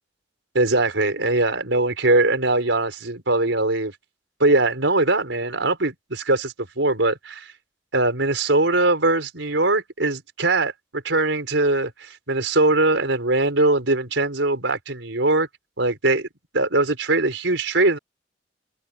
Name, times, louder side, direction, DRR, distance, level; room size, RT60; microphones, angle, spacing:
voice 1, 0.5-3.9 4.4-7.5 7.9-15.5 15.8-16.3 16.5-18.0, right 2 dB, 85° right, 4.5 m, -21 dB
head